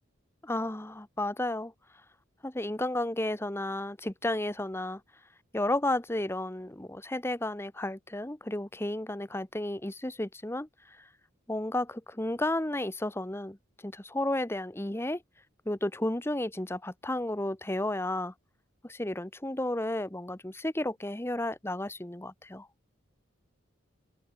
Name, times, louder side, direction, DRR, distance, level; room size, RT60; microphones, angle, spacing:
voice 1, 0.4-1.7 2.4-5.0 5.5-11.0 11.5-13.6 13.8-15.2 15.7-18.3 18.8-22.7, left 1 dB, 10° left, 1.0 m, -32 dB
head